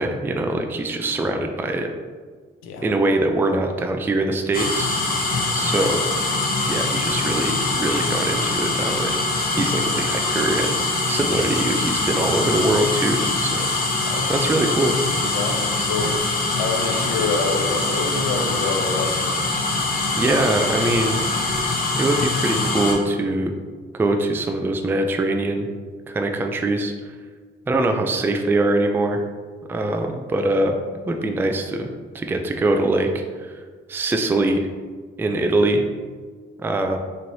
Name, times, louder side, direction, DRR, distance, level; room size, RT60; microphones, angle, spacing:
voice 1, 0.0-1.9 2.8-4.9 5.5-6.0 6.7-9.2 9.5-10.7 11.1-13.7 14.3-14.9 16.9-17.1 20.2-21.2 22.0-23.5 23.9-25.7 26.1-27.1 27.7-29.2 29.7-30.8 31.0-31.9 32.1-33.1 33.4-33.6 33.9-34.7 35.2-35.8 36.6-37.0, right 2 dB, 10° right, 4 dB, 0.3 m, -23 dB
sound 1, 4.5-22.9, left 3 dB, 45° left, 0.9 m, -23 dB
voice 2, 14.0-14.4 15.2-16.1 16.6-19.4, left 4 dB, 90° left, 3 dB, 0.5 m, -27 dB
4.2 x 3.1 x 2.7 m, 1.5 s
cardioid pair, 90°, 20 cm